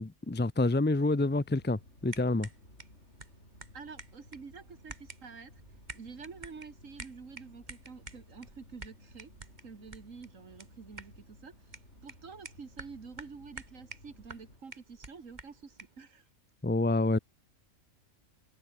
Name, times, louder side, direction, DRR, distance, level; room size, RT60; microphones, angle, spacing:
voice 1, 0.0-2.5 16.6-17.2, left 2 dB, 15° left, 0.3 m, -28 dB
sound 1, 1.1-14.6, left 1 dB, 60° left, 7.8 m, -58 dB
sound 2, 2.1-16.0, right 2 dB, 35° right, 2.5 m, -51 dB
voice 2, 3.7-5.6 5.9-9.3 9.6-11.5 12.0-16.2, right 5 dB, 75° right, 2.4 m, -48 dB
omnidirectional pair, 1.4 m